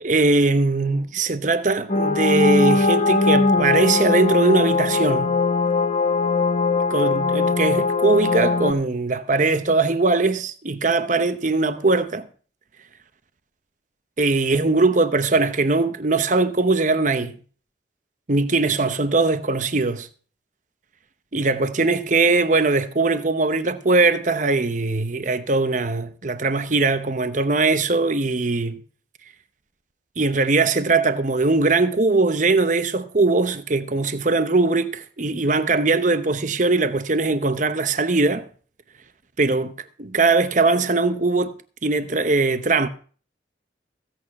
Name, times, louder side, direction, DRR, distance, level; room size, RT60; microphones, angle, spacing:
voice 1, 0.0-5.3 6.9-12.3 14.2-17.4 18.3-20.1 21.3-28.8 30.2-38.5 39.4-39.7 40.0-41.5 41.8-42.9, right 3 dB, 40° right, 0.9 m, -20 dB
sound 1, 1.9-8.7, left 3 dB, 35° left, 1.0 m, -20 dB
16.0 x 8.7 x 5.3 m
head